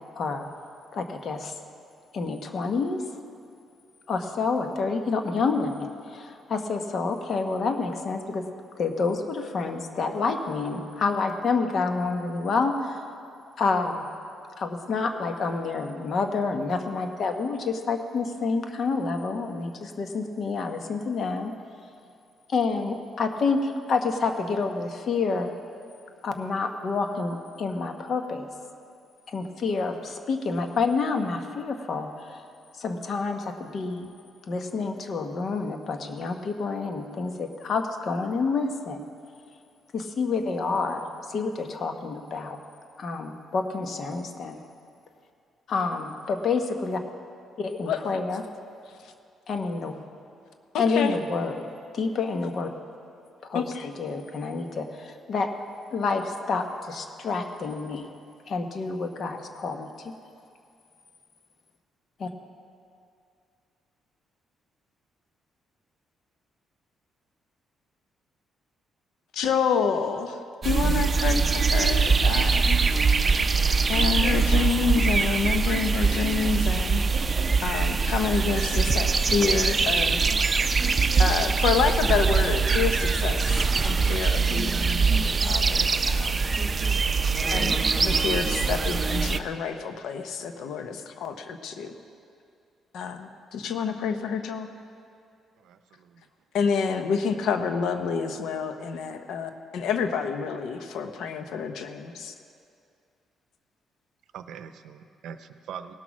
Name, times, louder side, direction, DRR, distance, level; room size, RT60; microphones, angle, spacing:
voice 1, 0.1-0.5 0.9-1.5 2.1-3.0 4.1-8.4 8.8-13.0 13.6-14.1 14.6-21.5 22.5-25.5 26.2-28.5 29.3-32.4 32.8-34.1 34.5-39.0 39.9-42.6 43.0-44.6 45.7-47.0 47.6-48.4 49.5-49.9 50.8-51.6 51.9-52.7 53.5-55.5 55.9-58.1 58.5-59.9 62.2-62.3, left 4 dB, 55° left, 6 dB, 1.1 m, -28 dB
voice 2, 50.7-51.1 53.5-53.9 69.3-70.4 70.6-72.8 73.9-77.3 77.6-80.2 81.2-86.4 87.5-91.9 92.9-94.7 96.5-102.3, left 6 dB, 80° left, 7 dB, 0.8 m, -28 dB
sound 1, 70.6-89.4, right 4 dB, 35° right, 0.5 m, -23 dB
voice 3, 95.6-96.3 96.6-96.7 104.3-105.9, right 8 dB, 80° right, 10 dB, 0.6 m, -42 dB
18.0 x 6.2 x 6.1 m, 2.4 s
cardioid pair, 90°, 0 cm